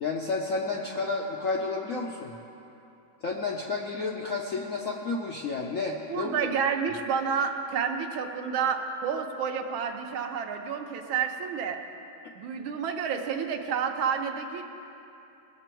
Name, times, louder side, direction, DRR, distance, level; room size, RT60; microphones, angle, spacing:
voice 1, 0.0-2.3 3.2-6.3, left 3 dB, 70° left, 0 dB, 0.7 m, -31 dB
voice 2, 6.1-11.8 12.4-14.6, right 6 dB, 90° right, 4 dB, 1.6 m, -29 dB
19.5 x 6.9 x 4.5 m, 2.8 s
omnidirectional pair, 2.2 m